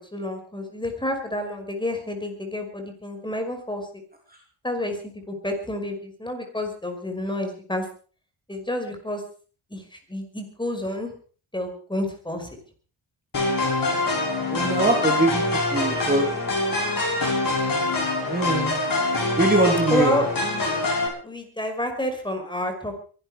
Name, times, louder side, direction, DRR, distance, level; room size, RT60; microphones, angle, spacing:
voice 1, 0.1-3.8 4.6-5.0 5.3-7.8 8.5-9.2 9.7-11.1 11.5-12.5 19.9-20.3 21.2-23.0, left 1 dB, 10° left, 5 dB, 5.4 m, -29 dB
sound 1, 13.3-21.1, left 2 dB, 40° left, 7.0 m, -24 dB
voice 2, 14.5-15.4 15.7-16.3 18.3-18.8 19.4-20.2, right 2 dB, 20° right, 2 dB, 3.1 m, -22 dB
23.0 x 12.5 x 5.0 m, 0.41 s
cardioid pair, 110°, 50 cm